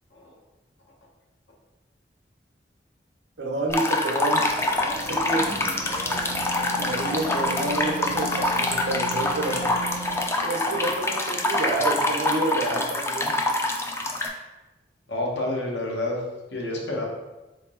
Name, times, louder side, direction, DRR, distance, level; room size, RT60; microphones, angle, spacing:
voice 1, 3.4-4.5 4.7-5.5 6.8-9.7 10.4-13.4, right 2 dB, 85° right, 0 dB, 0.9 m, -29 dB
sound 1, 3.7-14.3, left 2 dB, 15° left, 0.4 m, -25 dB
sound 2, 4.4-10.3, right 1 dB, 60° left, 1.3 m, -36 dB
voice 2, 15.1-16.2 16.5-17.1, left 1 dB, 85° left, -2 dB, 1.1 m, -29 dB
3.8 x 3.7 x 3.7 m, 1.1 s
head